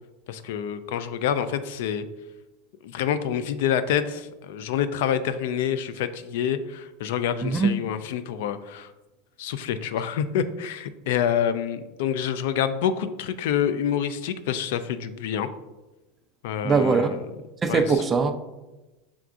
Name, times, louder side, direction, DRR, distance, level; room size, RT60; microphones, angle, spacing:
voice 1, 0.3-2.1 2.8-8.9 9.4-15.5 16.4-17.2 17.7-17.9, left 9 dB, 70° left, 0.3 m, -27 dB
voice 2, 7.4-7.7 16.6-17.1 17.6-18.3, right 5 dB, 20° right, 0.3 m, -21 dB
5.9 x 3.5 x 2.5 m
supercardioid pair, 155°, 0 cm